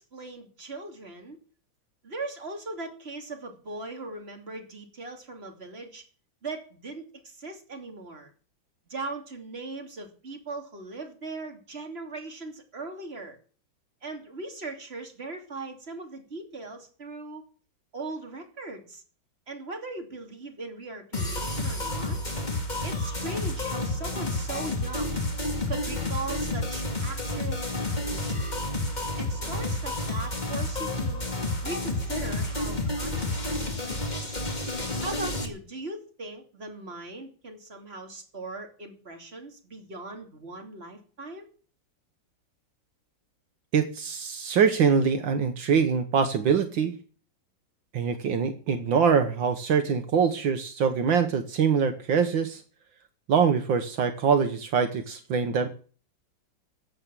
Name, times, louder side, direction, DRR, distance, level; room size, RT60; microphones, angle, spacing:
voice 1, 0.0-1.4 2.0-6.0 6.4-8.3 8.9-13.4 14.0-17.4 17.9-19.0 19.5-22.2 22.8-25.2 25.7-28.5 29.2-31.3 31.6-34.4 35.0-41.5, right 3 dB, 30° right, 3 dB, 3.1 m, -39 dB
sound 1, 21.1-35.4, left 2 dB, 20° left, 2.4 m, -30 dB
voice 2, 43.7-47.0 47.9-52.6 53.3-55.7, right 6 dB, 75° right, 8 dB, 1.9 m, -24 dB
15.0 x 8.2 x 7.5 m, 0.40 s
omnidirectional pair, 2.1 m